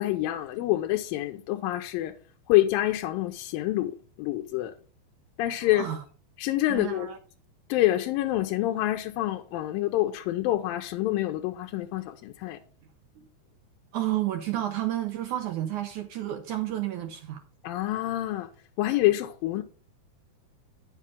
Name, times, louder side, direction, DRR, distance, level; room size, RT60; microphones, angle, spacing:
voice 1, 0.0-2.1 2.5-4.7 5.4-5.9 6.4-7.1 7.7-12.6 17.6-18.5 18.8-19.6, left 15 dB, 80° left, 2.2 m, -27 dB
voice 2, 5.6-6.0 6.7-7.2 13.9-17.4, right 13 dB, 80° right, 1.8 m, -31 dB
9.6 x 7.3 x 3.6 m
omnidirectional pair, 4.5 m